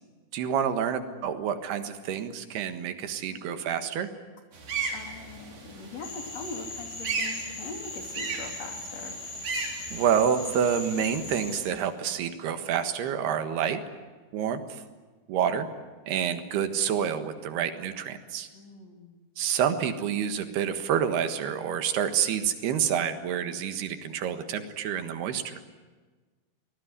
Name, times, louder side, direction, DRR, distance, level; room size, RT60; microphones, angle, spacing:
voice 1, 0.3-4.1 9.9-13.8 14.3-14.6 15.3-15.7 16.1-18.5 19.4-25.6, right 8 dB, 90° right, 8 dB, 3.6 m, -28 dB
voice 2, 3.3-3.6 4.9-9.2 18.5-19.1, left 3 dB, 45° left, 3 dB, 3.7 m, -42 dB
sound 1, 4.5-11.8, right 4 dB, 55° right, 5.3 m, -37 dB
Cricket / Frog, 6.0-11.6, left 3 dB, 75° left, 6.8 m, -40 dB
25.0 x 19.5 x 9.8 m, 1.3 s
omnidirectional pair, 4.5 m